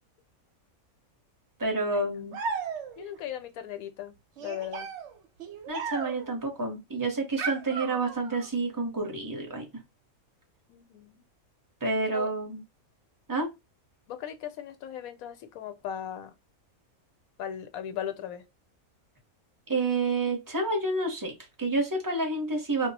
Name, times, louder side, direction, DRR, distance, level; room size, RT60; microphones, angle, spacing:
voice 1, 1.6-2.4 5.7-9.6 11.8-12.6 13.3-13.5 19.7-22.9, right 2 dB, 20° right, 0.6 m, -29 dB
sound 1, 2.3-3.2 4.4-6.4 7.4-8.5, right 6 dB, 65° right, 0.8 m, -36 dB
voice 2, 3.0-4.9 10.7-11.2 12.0-12.3 14.1-16.3 17.4-18.5, left 10 dB, 80° left, 1.0 m, -38 dB
2.3 x 2.0 x 3.8 m
omnidirectional pair, 1.5 m